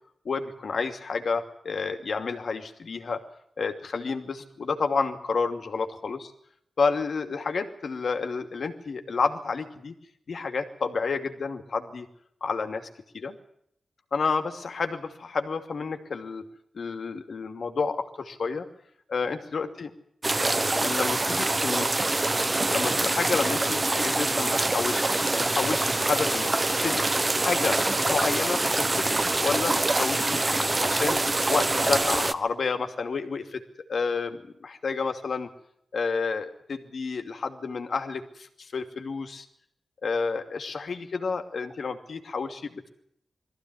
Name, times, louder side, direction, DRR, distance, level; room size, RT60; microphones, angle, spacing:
voice 1, 0.2-3.2 3.6-6.3 6.8-9.9 10.3-12.1 12.4-12.9 13.1-13.4 14.1-16.5 16.7-18.7 19.1-19.9 20.8-21.9 22.3-25.0 25.4-27.0 27.4-27.8 28.1-29.1 29.4-30.4 30.8-31.2 31.5-33.6 33.9-35.5 35.9-39.4 40.0-42.9, left 4 dB, 70° left, 7 dB, 2.6 m, -30 dB
sound 1, 20.2-32.3, right 2 dB, 30° right, 1.2 m, -25 dB
22.5 x 15.0 x 9.7 m, 0.72 s
wide cardioid pair, 90°, 0 cm